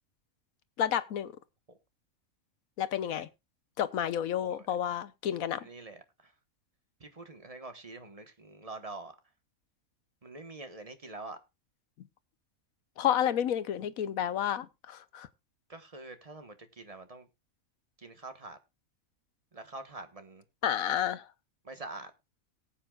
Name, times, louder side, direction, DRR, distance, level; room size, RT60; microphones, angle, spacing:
voice 1, 0.8-1.3 2.8-3.3 3.8-5.7 13.0-15.3 20.6-21.3, left 10 dB, 80° left, 1.3 m, -30 dB
voice 2, 5.5-6.3 7.0-9.1 10.2-11.4 15.7-17.3 18.0-18.6 19.5-20.4 21.6-22.1, right 2 dB, 25° right, 1.2 m, -45 dB
18.5 x 8.7 x 2.3 m
omnidirectional pair, 1.5 m